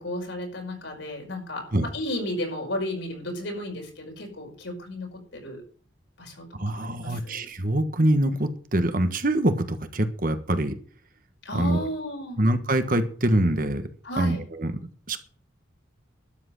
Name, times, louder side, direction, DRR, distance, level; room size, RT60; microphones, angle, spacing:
voice 1, 0.0-5.6 6.2-7.5 11.4-12.4 14.0-14.5, left 1 dB, 70° left, 2 dB, 5.3 m, -34 dB
voice 2, 6.6-10.7 11.5-11.9 12.4-13.8 14.2-14.8 15.1-15.2, right 1 dB, 45° right, 8 dB, 1.4 m, -24 dB
12.0 x 7.8 x 7.7 m, 0.43 s
head